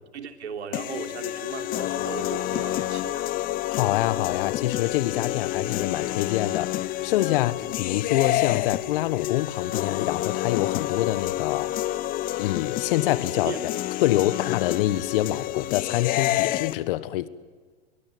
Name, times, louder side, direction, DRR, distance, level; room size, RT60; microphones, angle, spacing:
voice 1, 0.1-3.3 13.4-13.6, right 7 dB, 85° right, 3.4 m, -37 dB
sound 1, 0.7-16.7, left 15 dB, 25° left, 0.7 m, -28 dB
voice 2, 3.7-11.8 12.4-13.7 14.0-17.3, left 15 dB, 55° left, 1.4 m, -26 dB
25.5 x 23.0 x 9.5 m
hypercardioid pair, 125°, 32 cm